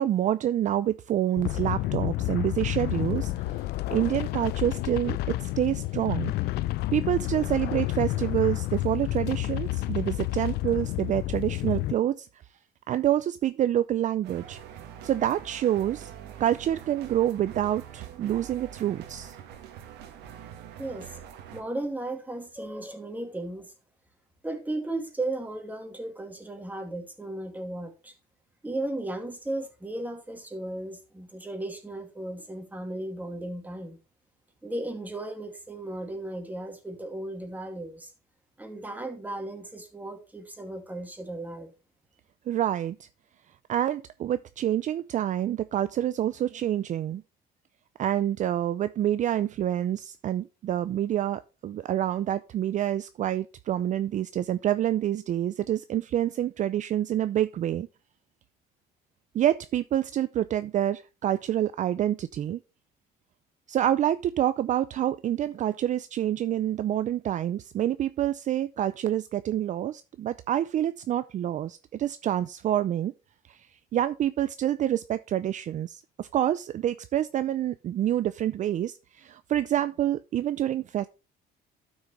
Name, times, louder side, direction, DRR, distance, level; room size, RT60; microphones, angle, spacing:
voice 1, 0.0-3.3 3.9-6.3 6.9-12.3 12.9-14.6 15.0-16.1 16.4-19.4 42.5-43.1 43.7-47.2 48.0-57.9 59.3-62.6 63.7-73.1 73.5-73.6 73.9-81.1, right 11 dB, 45° right, 0.4 m, -27 dB
sound 1, 1.4-11.9, left 16 dB, 75° left, 0.5 m, -30 dB
sound 2, 14.2-21.6, right 9 dB, 85° right, 1.6 m, -44 dB
voice 2, 20.8-21.2 21.5-23.7 24.4-28.1 28.6-34.0 34.6-38.1 38.6-41.7, right 1 dB, 10° right, 2.3 m, -35 dB
12.0 x 6.2 x 3.2 m
cardioid pair, 110°, 17 cm